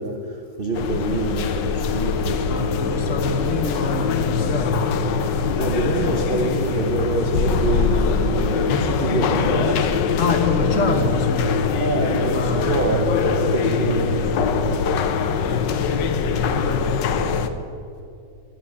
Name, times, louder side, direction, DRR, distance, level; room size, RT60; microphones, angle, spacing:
voice 1, 0.0-3.5 5.6-9.9 10.7-11.0 11.8-14.4, right 3 dB, 80° right, 4 dB, 0.5 m, -26 dB
sound 1, 0.7-17.5, left 5 dB, 70° left, 1.3 m, -22 dB
voice 2, 2.5-4.9 10.2-11.7 12.3-13.1 13.6-13.9 14.2-14.5 16.1-16.7, left 3 dB, 50° left, 6 dB, 1.1 m, -26 dB
10.5 x 7.9 x 8.3 m, 2.6 s
omnidirectional pair, 2.2 m